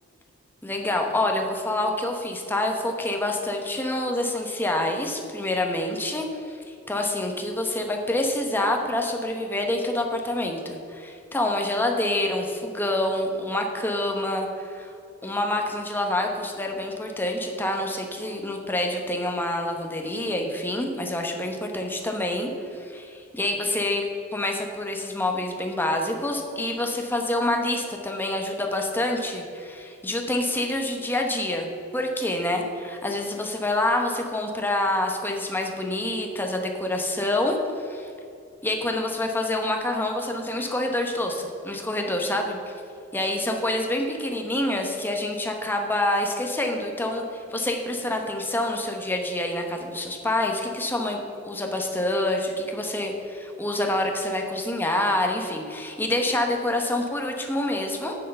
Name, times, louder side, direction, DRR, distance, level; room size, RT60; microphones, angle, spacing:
voice 1, 0.6-14.9 15.2-24.0 24.3-38.1 38.6-42.7 43.1-58.2, left 1 dB, 10° left, 2 dB, 0.9 m, -27 dB
7.7 x 6.4 x 6.8 m, 2.6 s
head